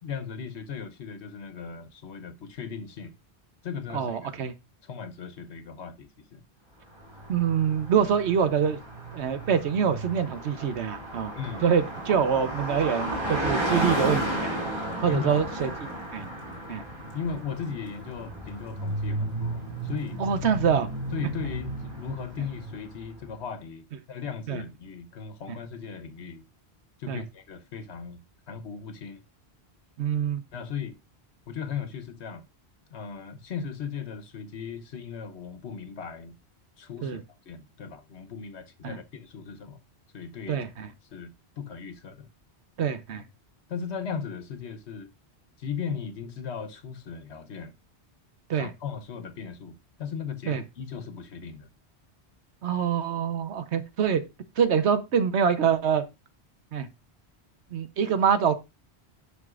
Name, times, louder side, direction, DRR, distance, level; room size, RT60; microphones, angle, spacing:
voice 1, 0.0-3.2 3.6-4.4 4.8-6.4 11.3-11.8 15.1-15.5 17.1-20.2 21.1-26.4 27.0-29.2 30.5-31.0 31.5-32.5 32.9-36.4 36.8-37.2 37.4-39.8 40.1-40.6 41.1-42.3 43.7-45.1 45.6-47.7 48.6-51.7, left 6 dB, 85° left, 1.2 m, -37 dB
voice 2, 3.9-4.5 7.3-8.8 9.1-11.3 11.6-14.6 15.0-15.7 16.1-16.3 16.7-16.8 20.2-20.9 24.5-24.6 27.1-27.2 30.0-30.4 37.0-37.2 38.8-39.0 40.5-40.9 42.8-43.2 48.5-48.7 50.5-50.6 52.6-54.2 54.6-56.0 56.7-56.9 57.7-58.5, right 7 dB, 80° right, 1.1 m, -25 dB
Car passing by, 7.0-23.0, right 1 dB, 25° right, 2.7 m, -33 dB
11.0 x 5.9 x 2.4 m
omnidirectional pair, 1.1 m